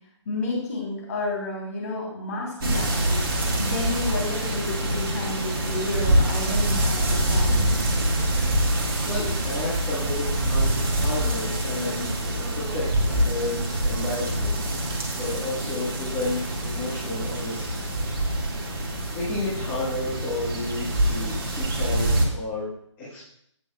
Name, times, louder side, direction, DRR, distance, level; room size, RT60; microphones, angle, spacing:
voice 1, 0.2-3.2 3.6-7.8, left 2 dB, 30° left, -3 dB, 3.2 m, -31 dB
sound 1, 2.6-22.3, right 1 dB, 45° right, 1.9 m, -25 dB
voice 2, 8.8-17.8 18.4-18.7 19.1-22.7 23.0-23.2, left 2 dB, 10° left, -11 dB, 1.5 m, -32 dB
15.5 x 6.2 x 2.3 m, 0.69 s
figure-of-eight pair, 165°, 16 cm